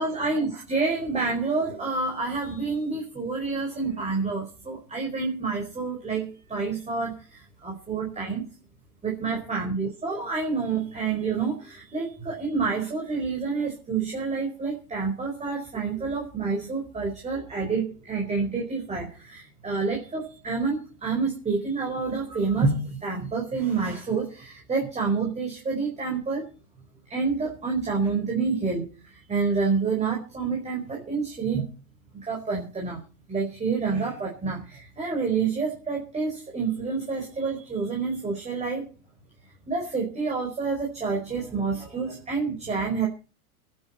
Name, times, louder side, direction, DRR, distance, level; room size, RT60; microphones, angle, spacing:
voice 1, 0.0-8.5 9.0-26.5 27.1-31.7 32.1-33.0 33.3-38.8 39.7-43.1, right 4 dB, 15° right, -1 dB, 4.9 m, -28 dB
25.0 x 10.5 x 4.4 m, 0.36 s
hypercardioid pair, 115°, 45 cm